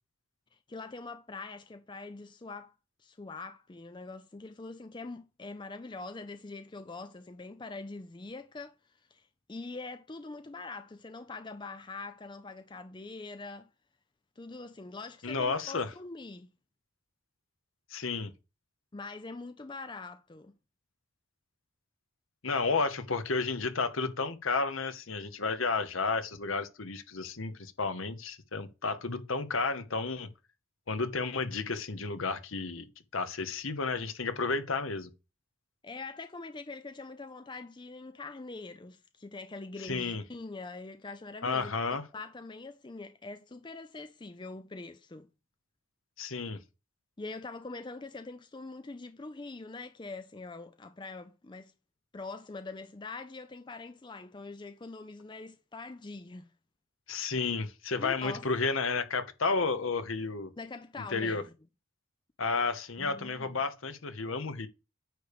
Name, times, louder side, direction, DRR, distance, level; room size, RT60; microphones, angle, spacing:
voice 1, 0.5-2.7 3.0-13.7 14.4-16.5 18.9-20.6 35.8-41.7 42.1-45.3 47.2-51.7 52.1-56.5 58.0-58.5 60.6-61.5 63.0-63.5, left 3 dB, 20° left, 0.4 m, -43 dB
voice 2, 15.2-15.9 17.9-18.3 22.4-30.3 30.9-32.9 33.1-35.1 39.8-40.2 41.4-42.0 46.2-46.6 57.1-60.5 61.1-61.4 62.4-64.7, left 4 dB, 70° left, 1.1 m, -32 dB
9.2 x 3.4 x 6.7 m
head